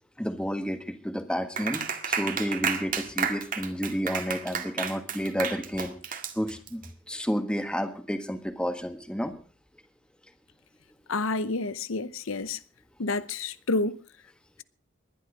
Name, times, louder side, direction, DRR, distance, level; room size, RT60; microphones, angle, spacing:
voice 1, 0.2-6.8 7.1-9.3, equal, 5° left, 1.5 m, -31 dB
Clapping, 1.6-6.9, right 6 dB, 40° right, 1.9 m, -31 dB
voice 2, 11.1-12.6 13.0-14.0, left 3 dB, 80° left, 0.8 m, -29 dB
20.0 x 11.5 x 5.0 m
head